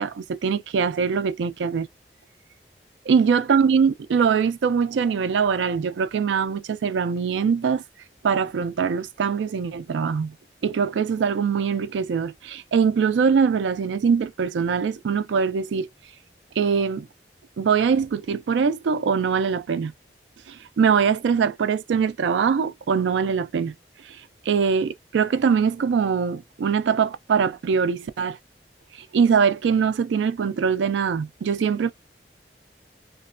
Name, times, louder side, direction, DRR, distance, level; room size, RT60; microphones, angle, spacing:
voice 1, 0.0-1.9 3.1-7.8 8.2-10.3 10.6-15.9 16.6-17.1 17.6-19.9 20.5-23.7 24.1-24.2 24.5-28.4 29.1-31.9, right 6 dB, 85° right, 0.3 m, -22 dB
3.0 x 2.1 x 2.5 m
head